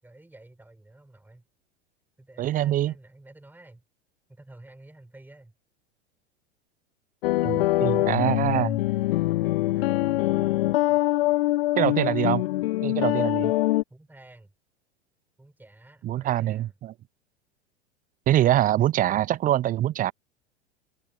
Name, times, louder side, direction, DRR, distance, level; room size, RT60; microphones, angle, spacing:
voice 1, 0.0-1.4 2.2-3.8 4.3-5.5 9.7-10.0 13.9-14.5 15.4-16.7, right 2 dB, 5° right, 7.9 m, -51 dB
voice 2, 2.4-2.9 7.4-8.8 11.8-12.4 12.8-13.5 16.0-16.9 18.3-20.1, right 13 dB, 25° right, 0.7 m, -24 dB
sound 1, 7.2-13.8, left 17 dB, 55° left, 0.7 m, -24 dB
figure-of-eight pair, 90°, 35 cm